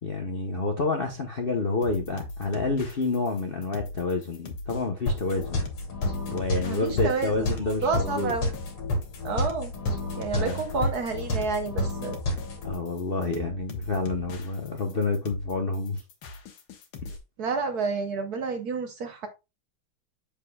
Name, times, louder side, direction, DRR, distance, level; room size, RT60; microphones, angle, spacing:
voice 1, 0.0-5.7 6.3-8.3 10.3-10.6 12.6-16.0, left 3 dB, 45° left, 0.7 m, -29 dB
sound 1, 1.8-17.2, left 2 dB, 70° left, 1.9 m, -41 dB
sound 2, 5.1-12.7, left 1 dB, 90° left, 2.7 m, -30 dB
voice 2, 6.6-7.5 7.8-8.5 9.2-9.7 10.2-12.2 17.4-19.3, right 4 dB, 60° right, 1.2 m, -29 dB
7.4 x 7.0 x 2.3 m
omnidirectional pair, 2.3 m